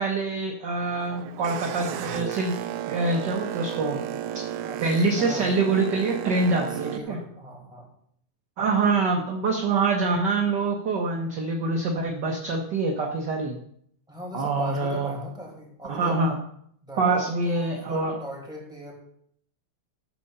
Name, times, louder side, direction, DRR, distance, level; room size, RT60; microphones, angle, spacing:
voice 1, 0.0-2.5 2.9-4.0 4.8-7.2 8.6-13.6 14.3-15.1 15.9-16.4 17.0-18.2, right 3 dB, 50° right, 1 dB, 1.5 m, -25 dB
Boat Water vehicle, 0.8-7.0, right 11 dB, 85° right, 2.1 m, -33 dB
voice 2, 5.2-5.5 6.5-7.9 14.1-16.3 16.8-18.9, equal, ahead, -2 dB, 4.4 m, -39 dB
14.0 x 6.2 x 6.8 m, 0.67 s
omnidirectional pair, 3.3 m